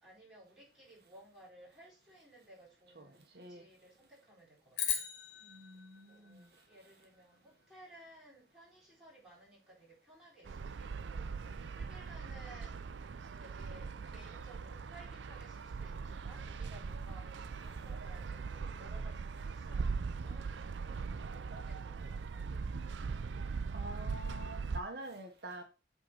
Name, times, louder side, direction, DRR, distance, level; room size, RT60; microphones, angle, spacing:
voice 1, 0.0-5.0 6.1-11.3 11.7-12.8 13.4-21.1 21.3-22.4, right 1 dB, 5° right, 4.3 m, -58 dB
voice 2, 2.9-3.6 5.4-6.5 23.7-25.6, right 1 dB, 60° right, 1.1 m, -47 dB
sound 1, 4.7-7.2, left 8 dB, 80° left, 1.7 m, -39 dB
sound 2, 10.5-24.8, right 5 dB, 90° right, 0.5 m, -40 dB
8.2 x 3.8 x 5.2 m
head